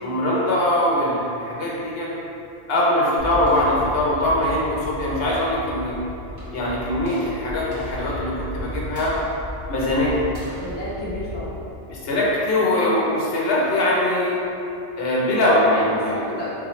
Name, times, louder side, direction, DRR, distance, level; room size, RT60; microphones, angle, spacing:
voice 1, 0.0-2.1 2.7-6.0 6.5-9.1 9.7-10.2 11.9-14.4 15.0-16.1, left 1 dB, 65° left, -5 dB, 0.9 m, -22 dB
sound 1, 3.2-12.3, left 1 dB, 25° right, 0.6 m, -35 dB
voice 2, 10.6-11.6 15.4-16.5, left 1 dB, 45° left, -10 dB, 0.3 m, -31 dB
3.8 x 2.1 x 3.0 m, 2.8 s
omnidirectional pair, 1.1 m